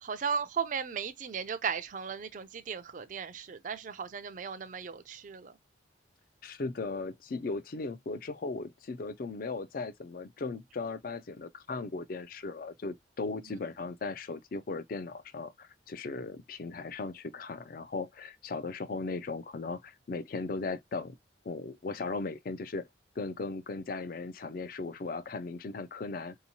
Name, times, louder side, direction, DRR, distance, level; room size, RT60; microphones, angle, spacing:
voice 1, 0.0-5.5, right 6 dB, 40° right, 0.4 m, -36 dB
voice 2, 6.4-21.2 21.4-22.9 23.2-26.4, left 3 dB, 50° left, 0.4 m, -37 dB
4.4 x 2.8 x 2.7 m
head